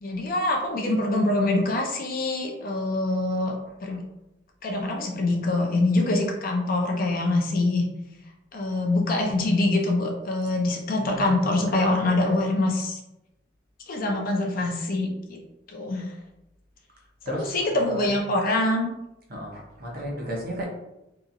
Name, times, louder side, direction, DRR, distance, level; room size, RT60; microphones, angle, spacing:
voice 1, 0.0-3.6 3.8-4.0 4.6-7.9 8.5-13.0 13.9-15.4 15.7-16.0 17.3-18.9, left 2 dB, 45° left, 2 dB, 0.4 m, -24 dB
voice 2, 11.0-12.3 17.3-18.1 19.3-20.6, right 1 dB, 45° right, -1 dB, 0.7 m, -35 dB
2.8 x 2.4 x 2.5 m, 0.90 s
head